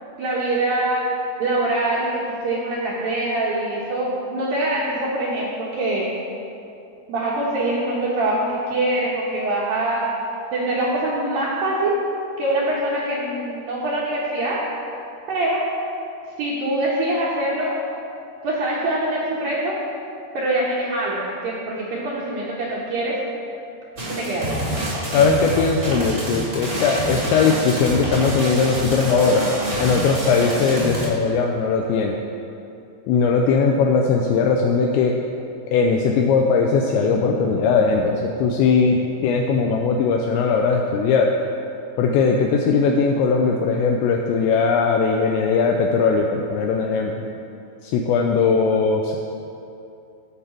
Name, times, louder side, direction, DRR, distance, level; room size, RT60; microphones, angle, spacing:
voice 1, 0.2-1.0 1.4-6.1 7.1-10.1 10.5-12.0 12.4-14.6 15.3-15.6 16.4-17.8 18.4-19.7 20.3-23.2 24.0-24.6, right 1 dB, 80° right, -7 dB, 2.1 m, -24 dB
sound 1, 24.0-31.1, right 1 dB, 50° right, 0.8 m, -27 dB
voice 2, 25.1-29.4 29.8-32.2 33.1-35.2 35.7-41.3 42.0-47.1 47.8-49.2, left 5 dB, 85° left, 1 dB, 2.5 m, -19 dB
16.0 x 5.6 x 4.4 m, 2.7 s
omnidirectional pair, 5.8 m